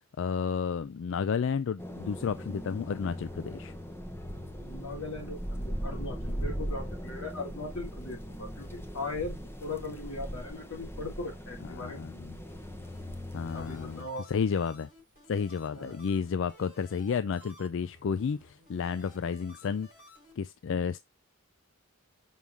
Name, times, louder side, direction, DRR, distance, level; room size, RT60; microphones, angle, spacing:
voice 1, 0.2-3.7 11.6-12.4 13.3-14.9 15.3-19.9 20.4-21.0, left 6 dB, 60° left, 0.4 m, -32 dB
sound 1, 1.8-14.0, equal, 10° left, 1.0 m, -39 dB
voice 2, 4.6-12.1 13.5-14.2 15.7-16.0, left 2 dB, 90° left, 3.6 m, -39 dB
sound 2, 12.5-20.3, left 1 dB, 45° left, 4.9 m, -56 dB
6.1 x 5.6 x 3.4 m
head